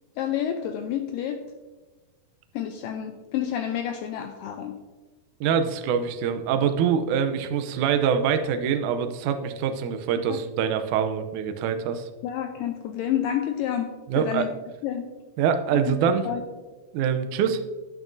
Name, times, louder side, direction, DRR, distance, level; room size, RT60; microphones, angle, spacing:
voice 1, 0.2-1.4 2.6-4.8 10.3-10.4 12.2-14.5 14.8-15.1 15.7-16.0 16.3-16.4, left 10 dB, 85° left, 6 dB, 2.0 m, -29 dB
voice 2, 5.4-12.1 14.1-14.5 15.4-16.3 16.9-17.6, right 7 dB, 80° right, 8 dB, 1.7 m, -24 dB
11.0 x 9.1 x 2.6 m, 1.3 s
omnidirectional pair, 4.4 m